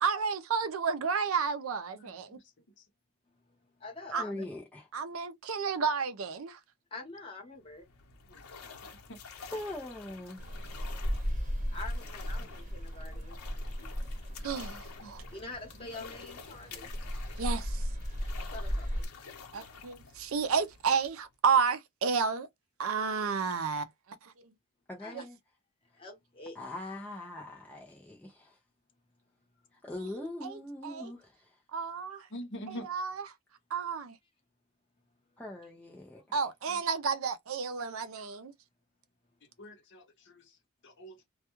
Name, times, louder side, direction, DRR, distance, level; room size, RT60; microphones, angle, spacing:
voice 1, 0.0-2.4 4.1-4.2 4.9-6.6 14.4-15.2 17.4-17.8 19.5-22.5 22.8-23.9 24.2-24.5 25.1-25.2 30.0-31.1 31.7-32.3 32.7-33.3 33.7-34.2 36.3-38.5, right 5 dB, 65° right, 0.5 m, -31 dB
voice 2, 3.3-4.4 6.9-7.9 11.7-13.4 15.3-16.9 18.5-19.1 25.0-25.1 25.9-26.6 32.5-32.7, left 2 dB, 25° left, 1.0 m, -46 dB
voice 3, 4.2-4.9 9.5-10.8 24.9-25.4 26.5-28.6 29.7-31.6 35.4-36.2, left 1 dB, 5° left, 0.5 m, -42 dB
sound 1, 7.6-21.3, left 5 dB, 85° left, 0.8 m, -50 dB
sound 2, 10.4-19.1, equal, 35° right, 0.9 m, -36 dB
voice 4, 14.7-15.1 32.3-32.9 39.6-40.4 40.8-41.3, equal, 55° left, 0.7 m, -44 dB
2.2 x 2.2 x 2.9 m
head